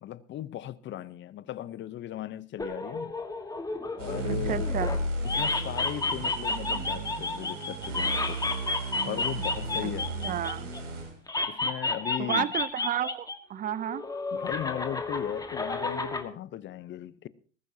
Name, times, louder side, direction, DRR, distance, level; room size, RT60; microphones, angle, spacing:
voice 1, 0.0-3.2 4.0-4.7 5.2-8.4 9.0-10.1 11.5-12.5 14.3-17.3, left 12 dB, 30° left, 0.8 m, -37 dB
sound 1, 2.6-5.0 5.2-10.8 11.3-13.4 13.6-16.2, left 3 dB, 10° left, 1.6 m, -31 dB
sound 2, 4.0-11.1, right 1 dB, 80° right, 6.4 m, -34 dB
voice 2, 4.5-5.0 9.8-9.9 10.2-10.7 12.2-14.0, right 10 dB, 25° right, 0.6 m, -31 dB
20.5 x 15.0 x 2.8 m
hypercardioid pair, 105°, 37 cm